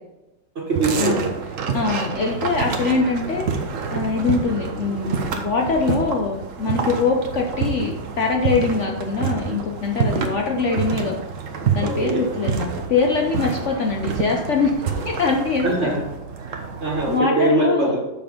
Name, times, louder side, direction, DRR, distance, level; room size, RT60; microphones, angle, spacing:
voice 1, 0.5-1.3 11.8-12.3 15.6-16.0 16.4-18.0, right 2 dB, 35° right, -3 dB, 1.6 m, -22 dB
sound 1, 0.7-17.2, right 5 dB, 55° right, 0.9 m, -28 dB
voice 2, 1.7-3.4 3.9-11.1 11.7-14.7 15.0-15.9 17.1-17.9, left 4 dB, 80° left, 1 dB, 0.6 m, -23 dB
6.9 x 5.8 x 5.2 m, 1.0 s
omnidirectional pair, 2.2 m